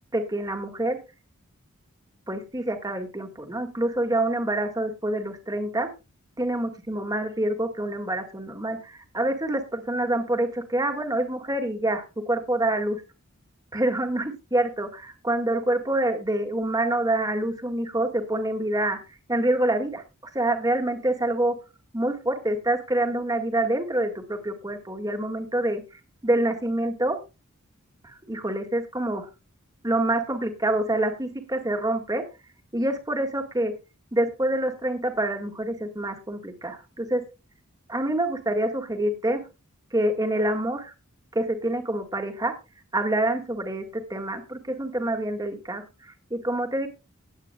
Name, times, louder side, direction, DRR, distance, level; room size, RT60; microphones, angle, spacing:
voice 1, 0.1-1.0 2.3-5.9 6.4-13.0 13.7-19.0 19.3-20.0 20.3-21.6 21.9-25.8 26.2-27.2 28.0-29.3 29.8-32.2 32.7-33.7 34.1-37.3 37.9-39.4 39.9-40.9 41.3-42.5 42.9-43.8 44.1-46.9, right 1 dB, 15° right, 5 dB, 1.9 m, -26 dB
18.0 x 8.9 x 2.3 m, 0.28 s
head